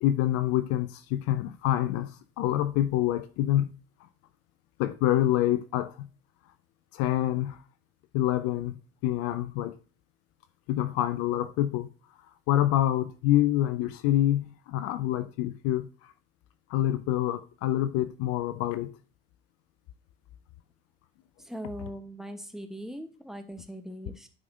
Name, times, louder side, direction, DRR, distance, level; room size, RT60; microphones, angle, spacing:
voice 1, 0.0-3.7 4.8-6.1 6.9-7.6 8.1-8.8 9.0-9.8 10.7-11.9 12.5-16.1 16.7-19.0, left 13 dB, 50° left, 0.6 m, -26 dB
voice 2, 21.4-24.3, equal, ahead, 1.1 m, -40 dB
11.0 x 5.0 x 2.7 m
figure-of-eight pair, 60°, 30 cm